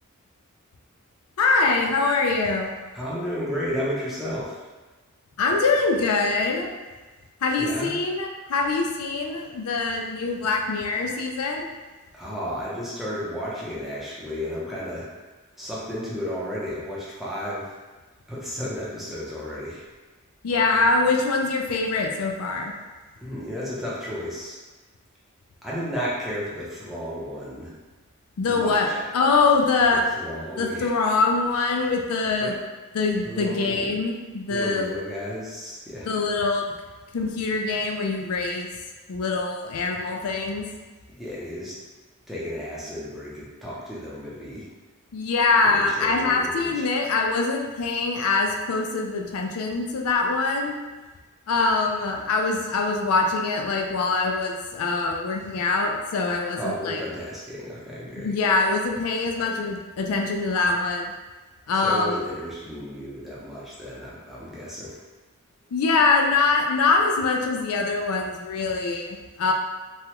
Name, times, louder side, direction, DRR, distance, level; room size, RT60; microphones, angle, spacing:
voice 1, 1.4-2.7 5.4-6.7 7.4-11.7 20.4-22.7 28.4-28.9 29.1-30.0 30.6-32.6 32.9-34.9 36.1-36.7 37.1-38.7 39.1-40.7 45.1-50.8 51.5-57.0 58.2-61.1 61.7-62.2 65.7-69.5, left 3 dB, 85° left, 1 dB, 0.4 m, -23 dB
voice 2, 2.9-4.6 7.6-7.9 12.1-15.1 15.6-17.7 18.3-19.9 23.2-24.6 25.6-27.7 28.5-29.0 29.9-30.9 32.4-32.5 33.2-33.9 34.5-36.1 41.2-41.7 42.3-44.7 45.6-46.8 56.6-58.3 61.8-65.0, equal, ahead, -8 dB, 0.7 m, -33 dB
3.2 x 2.3 x 2.9 m, 1.3 s
head